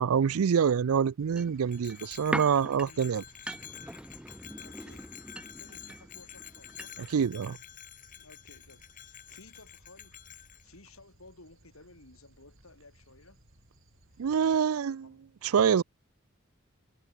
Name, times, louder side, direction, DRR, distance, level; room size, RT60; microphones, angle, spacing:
voice 1, 0.0-3.2 7.1-7.6 14.2-15.0 15.4-15.8, right 7 dB, 80° right, 0.4 m, -26 dB
Dog, 1.2-14.6, right 1 dB, 65° right, 4.7 m, -61 dB
sound 1, 1.4-7.2 7.4-7.5, right 1 dB, 5° right, 0.6 m, -41 dB
Bell, 1.7-10.7, left 11 dB, 35° left, 1.3 m, -49 dB
voice 2, 2.8-3.2 4.5-5.1 5.4-6.9 8.1-13.4 14.1-15.2, left 2 dB, 75° left, 4.9 m, -56 dB
head